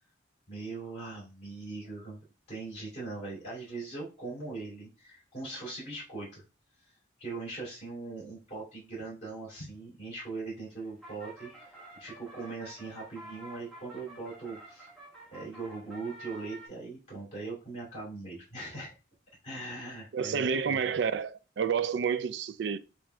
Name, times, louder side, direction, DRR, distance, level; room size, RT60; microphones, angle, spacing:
voice 1, 0.5-6.4 6.8-6.9 7.2-11.5 12.0-14.9 15.3-18.9 19.4-20.8, right 3 dB, 35° left, 2.5 m, -40 dB
sound 1, 10.5-16.7, right 2 dB, 5° left, 1.3 m, -50 dB
voice 2, 20.1-22.8, right 6 dB, 65° right, 0.3 m, -29 dB
7.2 x 2.6 x 2.2 m
head